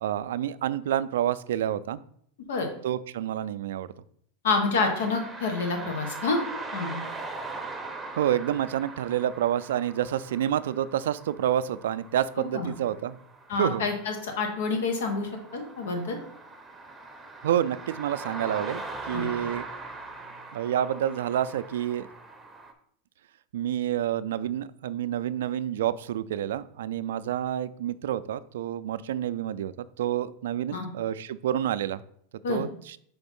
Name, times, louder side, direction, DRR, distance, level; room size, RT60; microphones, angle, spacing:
voice 1, 0.0-2.0 2.8-3.9 8.1-13.2 13.5-13.8 17.4-18.8 19.1-19.6 20.5-22.1 23.5-29.7 30.0-32.0 32.5-33.0, right 11 dB, 80° right, 15 dB, 0.3 m, -28 dB
voice 2, 4.4-6.4 6.7-7.0 12.5-12.7 13.5-16.2 19.1-19.3 30.7-30.9 32.4-32.6, left 3 dB, 80° left, 4 dB, 1.4 m, -28 dB
sound 1, 4.8-22.7, right 3 dB, 10° right, 0.8 m, -41 dB
5.0 x 3.5 x 5.3 m, 0.66 s
supercardioid pair, 125°, 0 cm